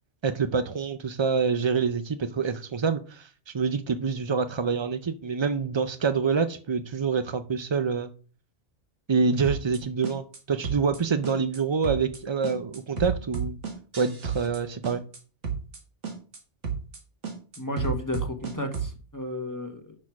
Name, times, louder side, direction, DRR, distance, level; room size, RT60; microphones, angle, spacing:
voice 1, 0.2-8.1 9.1-13.6 14.0-15.0, right 5 dB, 45° right, 0.3 m, -26 dB
sound 1, 9.4-9.8 10.0-10.4 10.6-11.0 11.2-11.6 11.8-12.2 12.4-14.6 14.8-15.2 15.4-15.8 16.0-16.4 16.6-17.0 17.2-18.9, right 6 dB, 90° right, 2.0 m, -32 dB
voice 2, 17.6-19.9, left 1 dB, 15° left, 1.2 m, -33 dB
6.4 x 6.3 x 5.9 m
omnidirectional pair, 1.2 m